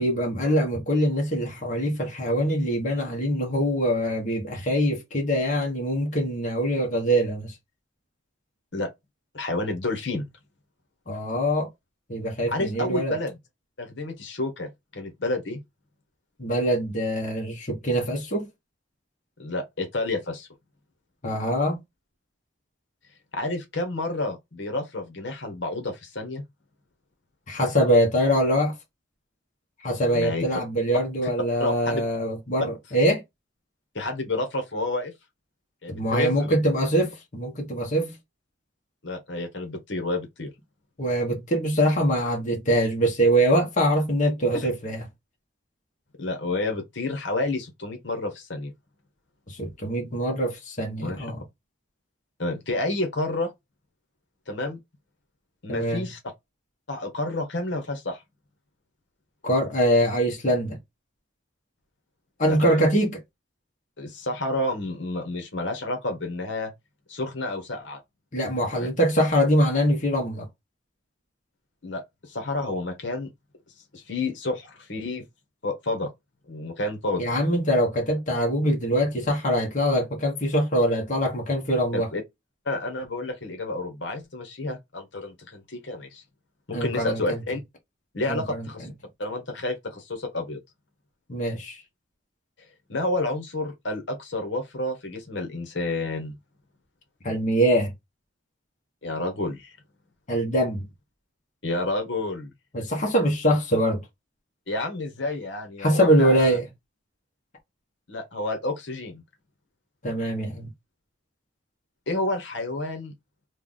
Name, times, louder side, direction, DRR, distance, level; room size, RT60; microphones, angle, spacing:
voice 1, 0.0-7.5 11.1-11.7 12.1-13.2 16.4-18.5 21.2-21.8 27.5-28.7 29.8-33.2 35.9-38.2 41.0-45.0 49.5-51.4 55.7-56.0 59.4-60.8 62.4-63.2 68.3-70.5 77.2-82.1 86.7-87.4 88.3-88.7 91.3-91.8 97.2-97.9 100.3-100.9 102.7-104.0 105.8-106.7 110.0-110.7, equal, 40° left, 1.2 m, -23 dB
voice 2, 9.3-10.3 12.5-13.4 13.8-15.6 19.4-20.5 23.3-26.4 30.1-30.4 31.2-31.3 31.6-32.0 33.9-35.1 35.8-36.6 39.0-40.5 46.2-48.7 51.0-51.3 52.4-53.5 54.5-54.8 55.6-56.2 56.9-58.2 62.4-62.9 64.0-66.7 67.1-68.0 71.8-73.3 73.9-75.2 75.6-76.1 76.5-77.3 81.9-82.2 82.6-86.2 86.7-87.6 88.1-88.9 89.2-90.6 92.9-96.3 99.0-99.8 101.6-102.5 104.7-106.6 108.1-109.2 112.1-113.1, left 2 dB, 65° left, 1.2 m, -30 dB
3.4 x 2.4 x 3.8 m
head